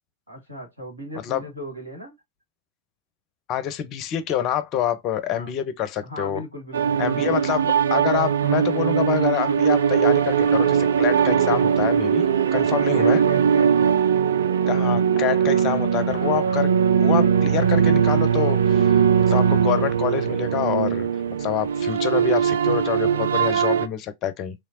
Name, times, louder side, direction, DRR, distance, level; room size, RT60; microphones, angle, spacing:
voice 1, 0.3-2.1 5.3-5.5 6.0-7.4 12.7-14.0 15.5-16.7, equal, 85° right, 1.7 m, -38 dB
voice 2, 3.5-6.4 7.0-12.2 12.5-13.2 14.7-16.7 17.0-21.1 21.4-24.5, left 10 dB, 35° left, 0.6 m, -26 dB
sound 1, 6.7-23.9, right 7 dB, 65° right, 0.4 m, -20 dB
3.1 x 3.0 x 2.7 m
figure-of-eight pair, 90°, 0 cm